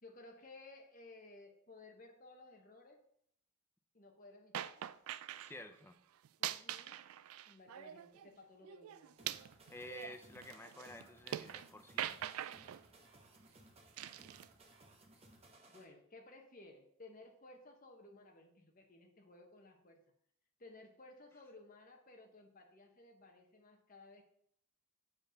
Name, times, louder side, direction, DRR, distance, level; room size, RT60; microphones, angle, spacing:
voice 1, 0.0-3.0 3.9-4.9 6.4-7.0 7.5-9.2 15.7-20.0 20.6-24.2, left 2 dB, 40° left, 3 dB, 1.2 m, -58 dB
sound 1, 4.5-5.5 6.2-8.3 8.6-11.7 12.0-12.8 14.0-14.5, right 11 dB, 80° right, 0.3 m, -43 dB
voice 2, 5.4-6.0 9.7-12.2, left 1 dB, 10° left, 7 dB, 0.5 m, -51 dB
sound 2, 9.2-15.8, right 2 dB, 30° right, 1.0 m, -62 dB
7.2 x 6.7 x 4.0 m, 0.68 s
head